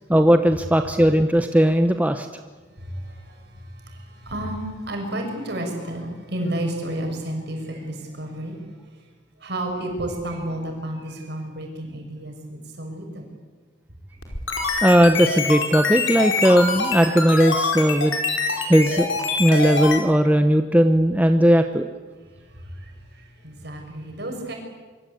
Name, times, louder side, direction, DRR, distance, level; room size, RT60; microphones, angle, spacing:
voice 1, 0.1-2.3 14.8-18.1 18.7-19.1 19.4-21.9, equal, 5° right, 7 dB, 0.9 m, -17 dB
voice 2, 2.8-8.6 9.4-13.3 14.3-14.4 22.5-24.5, right 1 dB, 55° right, 2 dB, 6.8 m, -32 dB
sound 1, 14.2-20.0, left 4 dB, 70° left, 4.9 m, -25 dB
25.5 x 24.0 x 8.6 m, 1.4 s
head